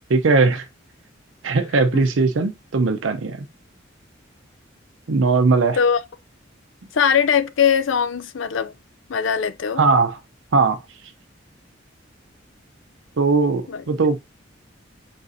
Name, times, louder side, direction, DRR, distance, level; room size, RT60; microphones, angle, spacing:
voice 1, 0.1-0.7 1.4-3.5 5.1-5.8 9.8-10.2 10.5-10.8 13.2-14.2, right 4 dB, 85° right, 0.6 m, -19 dB
voice 2, 6.9-8.7 9.1-9.8 13.7-13.8, left 7 dB, 75° left, 0.5 m, -20 dB
4.1 x 3.8 x 2.6 m
head